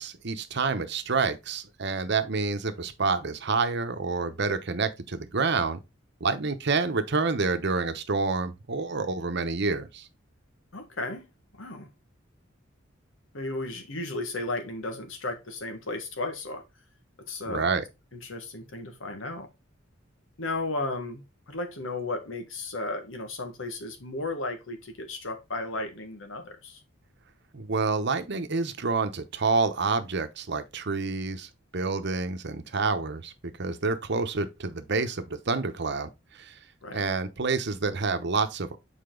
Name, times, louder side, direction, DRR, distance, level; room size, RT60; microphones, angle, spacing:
voice 1, 0.0-5.8 6.2-10.1 17.5-17.8 27.5-36.1 36.4-36.5 36.9-38.8, right 4 dB, 60° right, 0.9 m, -28 dB
voice 2, 10.7-11.3 11.5-11.9 13.3-16.6 17.3-17.7 18.1-19.5 20.4-26.8 36.8-37.0, left 2 dB, 90° left, 1.5 m, -34 dB
6.8 x 4.4 x 3.8 m
head